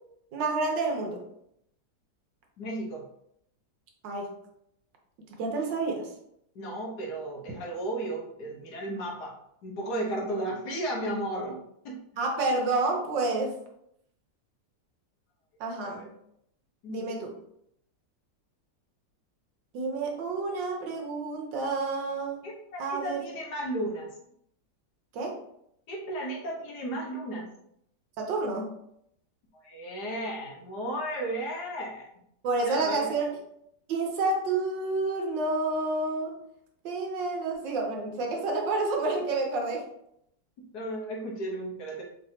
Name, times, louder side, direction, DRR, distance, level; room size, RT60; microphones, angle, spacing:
voice 1, 0.3-1.2 4.0-4.3 5.4-6.1 12.2-13.6 15.6-16.1 16.9-17.4 19.7-22.4 22.8-23.2 25.1-25.4 28.2-28.8 32.4-33.3 33.9-36.3 36.8-39.8, right 3 dB, 80° right, 1 dB, 1.5 m, -29 dB
voice 2, 2.6-3.0 6.5-9.3 9.6-11.6 11.8-12.0 15.8-16.1 16.8-17.2 22.4-24.1 25.9-27.4 29.6-32.1 32.6-33.1 40.7-42.0, right 1 dB, 65° left, -2 dB, 1.5 m, -34 dB
4.5 x 3.3 x 2.7 m, 0.74 s
omnidirectional pair, 1.9 m